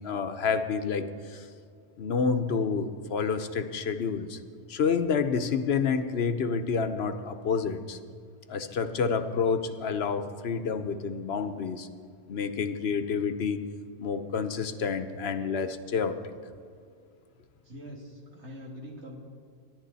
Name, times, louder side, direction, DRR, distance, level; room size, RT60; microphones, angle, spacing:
voice 1, 0.0-1.4 2.0-4.4 4.7-8.0 8.5-11.9 12.3-13.7 14.0-16.2, left 5 dB, 70° left, 10 dB, 1.0 m, -29 dB
voice 2, 17.6-19.2, equal, 85° right, -1 dB, 2.8 m, -43 dB
23.0 x 11.0 x 4.1 m, 2.2 s
omnidirectional pair, 1.1 m